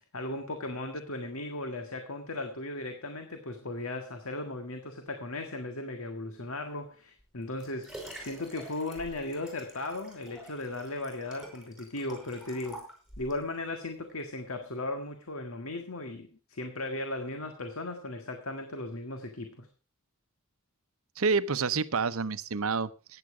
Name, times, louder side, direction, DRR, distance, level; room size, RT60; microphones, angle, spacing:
voice 1, 0.1-8.0 8.2-12.8 13.2-19.7, left 2 dB, 75° left, 6 dB, 1.7 m, -37 dB
Liquid, 7.2-13.5 14.1-14.2, right 1 dB, ahead, 5.3 m, -48 dB
voice 2, 21.2-23.2, right 4 dB, 75° right, 14 dB, 0.8 m, -28 dB
15.5 x 9.7 x 4.9 m, 0.36 s
head